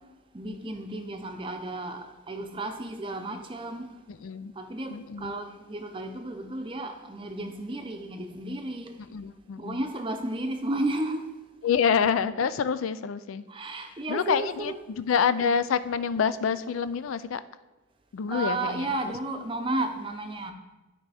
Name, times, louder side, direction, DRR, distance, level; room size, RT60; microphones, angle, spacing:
voice 1, 0.3-3.9 4.6-8.9 9.6-11.3 13.5-14.8 18.3-20.5, right 2 dB, 25° right, 0.6 m, -33 dB
voice 2, 4.2-4.5 4.9-5.3 9.1-9.8 11.6-13.4 14.1-17.4 18.1-19.4, left 6 dB, 85° left, 0.4 m, -27 dB
12.0 x 4.6 x 3.4 m
head